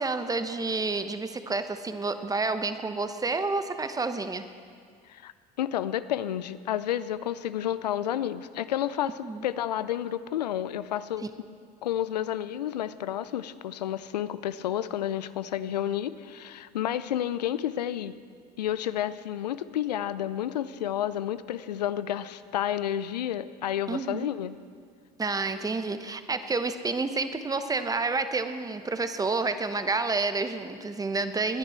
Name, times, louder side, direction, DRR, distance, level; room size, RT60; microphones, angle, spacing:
voice 1, 0.0-4.4 9.2-9.5 23.9-24.3 25.2-31.6, right 3 dB, 15° right, 9 dB, 1.0 m, -29 dB
voice 2, 5.6-9.1 9.4-11.3 11.8-18.2 18.6-24.6, left 11 dB, 85° left, 15 dB, 0.5 m, -30 dB
19.5 x 10.5 x 4.4 m, 2.1 s
hypercardioid pair, 70°, 21 cm